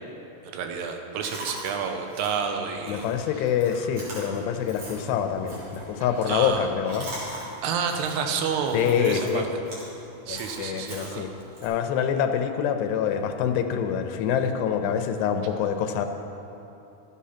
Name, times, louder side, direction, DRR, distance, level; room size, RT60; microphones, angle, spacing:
voice 1, 0.4-3.1 3.4-3.5 6.2-6.7 7.6-9.6 10.3-11.3, right 6 dB, 80° right, 4 dB, 2.9 m, -29 dB
Chewing mastication, 1.2-11.7, right 1 dB, 45° right, 3.8 m, -41 dB
voice 2, 2.9-7.1 8.7-9.5 10.3-11.3 11.6-16.1, left 8 dB, 85° left, 7 dB, 2.8 m, -26 dB
12.5 x 8.4 x 5.7 m, 2.9 s
omnidirectional pair, 4.7 m